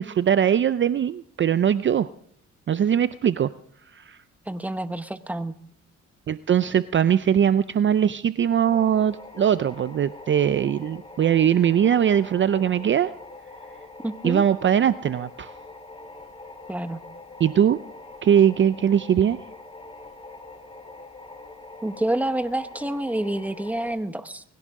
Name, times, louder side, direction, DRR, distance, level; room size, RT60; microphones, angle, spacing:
voice 1, 0.0-2.1 2.7-3.5 3.9-4.2 6.3-13.1 14.2-15.5 17.4-17.8 18.2-19.4, right 9 dB, 40° right, 14 dB, 0.5 m, -21 dB
voice 2, 4.5-5.5 14.0-14.4 16.7-17.0 21.8-24.4, right 1 dB, 5° right, 10 dB, 1.0 m, -28 dB
sound 1, 8.6-23.9, left 2 dB, 20° left, 3.6 m, -44 dB
21.5 x 16.5 x 3.7 m, 0.66 s
cardioid pair, 90°, 30 cm